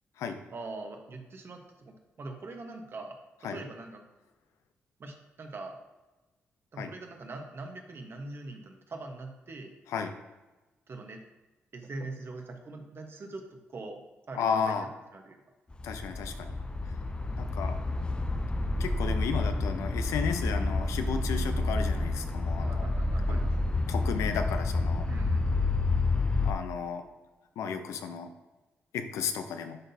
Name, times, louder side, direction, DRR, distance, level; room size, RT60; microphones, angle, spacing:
voice 1, 0.5-3.2 3.5-4.0 5.0-5.8 6.7-9.7 10.9-11.2 11.7-14.0 14.3-15.4 22.6-23.5 25.1-25.5, right 2 dB, 50° right, 4 dB, 1.1 m, -42 dB
voice 2, 14.3-14.9 15.8-16.5 17.4-17.8 18.8-22.9 23.3-23.4 23.9-25.1 26.4-27.0 27.6-28.3 28.9-29.8, left 6 dB, 85° left, 7 dB, 0.6 m, -33 dB
sound 1, 15.7-26.5, left 2 dB, 20° left, 0.4 m, -29 dB
10.5 x 3.9 x 2.7 m, 1.1 s
supercardioid pair, 60°, 5 cm